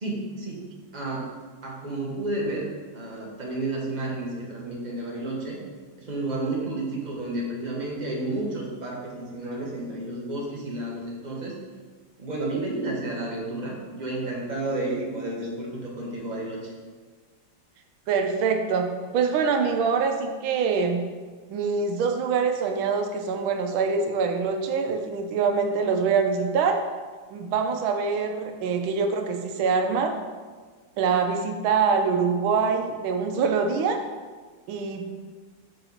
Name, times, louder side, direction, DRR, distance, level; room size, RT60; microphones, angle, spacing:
voice 1, 0.0-0.6 0.9-1.3 1.6-2.7 2.9-5.6 6.0-11.6 12.2-16.7, right 2 dB, 30° right, -3 dB, 0.9 m, -31 dB
voice 2, 18.1-18.9 19.1-21.0 21.5-26.8 27.3-30.1 31.0-34.0 34.7-35.0, right 5 dB, 85° right, 5 dB, 1.5 m, -24 dB
6.5 x 4.4 x 4.0 m, 1.4 s
omnidirectional pair, 2.2 m